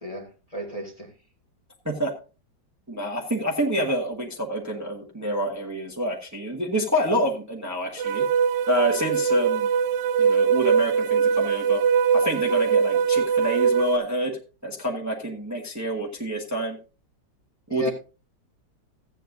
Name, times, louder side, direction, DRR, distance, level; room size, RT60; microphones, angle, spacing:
voice 1, 0.0-1.1 17.7-17.9, right 1 dB, 20° left, -1 dB, 1.6 m, -33 dB
voice 2, 2.9-8.2 8.7-9.7 10.2-11.8 12.1-16.8 17.7-17.9, right 1 dB, 10° right, 0 dB, 1.4 m, -27 dB
sound 1, 8.0-14.0, right 6 dB, 70° right, 1.3 m, -22 dB
15.0 x 9.0 x 2.6 m, 0.33 s
omnidirectional pair, 1.9 m